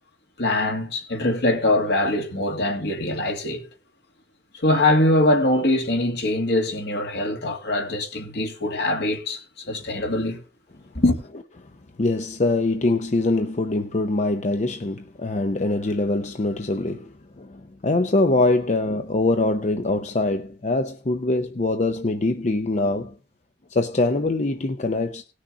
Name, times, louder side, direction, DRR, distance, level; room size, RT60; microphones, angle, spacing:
voice 1, 0.4-3.6 4.6-9.4 9.7-10.4 10.9-11.2, left 1 dB, 65° left, 2.2 m, -22 dB
voice 2, 12.0-23.1 23.7-25.2, left 2 dB, 40° left, 0.7 m, -23 dB
19.0 x 6.5 x 3.7 m
head